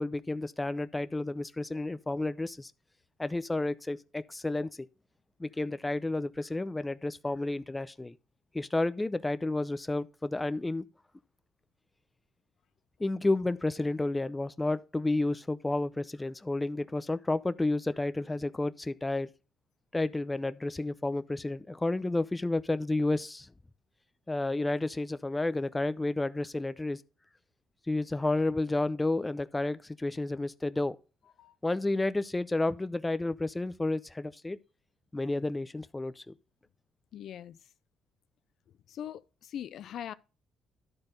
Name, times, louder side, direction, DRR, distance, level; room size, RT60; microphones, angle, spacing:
voice 1, 0.0-2.7 3.2-4.7 5.4-8.1 8.5-10.8 13.0-19.3 19.9-23.5 24.3-27.0 27.9-31.0 31.6-34.6 35.1-36.3, left 2 dB, 15° left, 0.5 m, -31 dB
voice 2, 37.1-37.6 38.9-40.1, left 10 dB, 70° left, 0.4 m, -41 dB
11.5 x 4.4 x 5.1 m
cardioid pair, 90°, 0 cm